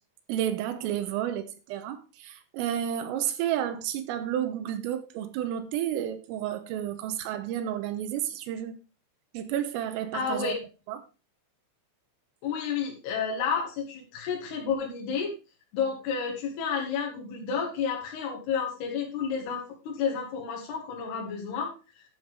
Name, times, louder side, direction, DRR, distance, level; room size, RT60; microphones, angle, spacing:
voice 1, 0.3-8.8 9.3-10.6 10.9-11.0, right 10 dB, 85° right, 3.6 m, -31 dB
voice 2, 10.1-10.6 12.4-15.3 15.7-21.7, left 6 dB, 60° left, 3.4 m, -31 dB
11.5 x 7.2 x 4.7 m
omnidirectional pair, 5.8 m